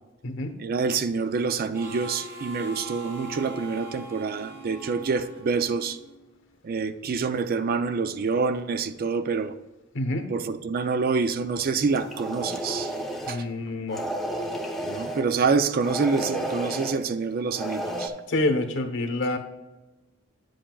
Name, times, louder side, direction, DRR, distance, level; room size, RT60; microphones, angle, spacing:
voice 1, 0.6-6.0 6.6-9.5 10.3-12.9 13.3-13.4 14.9-18.1, right 4 dB, 45° right, 0.4 m, -27 dB
Harmonica, 1.7-6.2, right 2 dB, 65° right, 2.7 m, -41 dB
voice 2, 9.9-10.3 13.3-14.0 18.3-19.4, left 2 dB, 65° left, 1.0 m, -27 dB
sound 1, 11.9-13.4 13.9-15.2 15.8-17.0 17.5-18.1, right 1 dB, ahead, 0.8 m, -32 dB
9.9 x 7.7 x 2.3 m
head